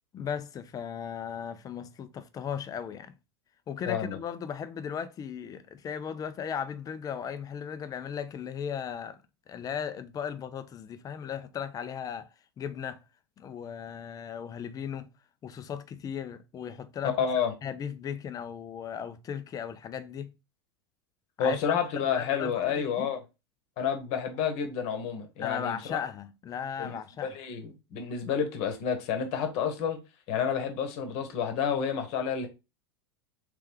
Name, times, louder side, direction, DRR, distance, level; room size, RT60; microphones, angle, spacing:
voice 1, 0.1-3.1 3.7-9.2 9.5-12.3 12.6-13.0 13.4-15.1 15.4-17.2 17.6-20.3 21.4-23.1 25.4-27.3, left 8 dB, 25° left, 0.5 m, -37 dB
voice 2, 3.9-4.2 17.2-17.5 21.4-23.2 23.8-26.0 26.8-26.9 27.2-30.0 30.3-32.5, left 7 dB, 50° left, 1.1 m, -30 dB
3.4 x 3.3 x 3.4 m
hypercardioid pair, 95°, 14 cm